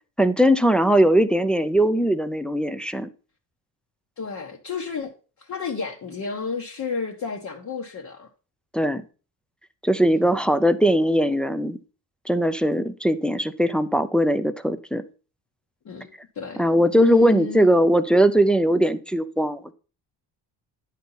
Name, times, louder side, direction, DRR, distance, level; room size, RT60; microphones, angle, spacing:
voice 1, 0.2-3.1 8.7-9.0 9.8-11.8 12.3-15.0 16.6-19.7, equal, ahead, 0.3 m, -20 dB
voice 2, 4.2-5.1 5.4-8.3 10.1-10.4 15.8-16.1 16.3-16.6 16.9-17.7, left 5 dB, 40° left, 1.1 m, -31 dB
10.5 x 4.2 x 5.6 m
cardioid pair, 140°, 43 cm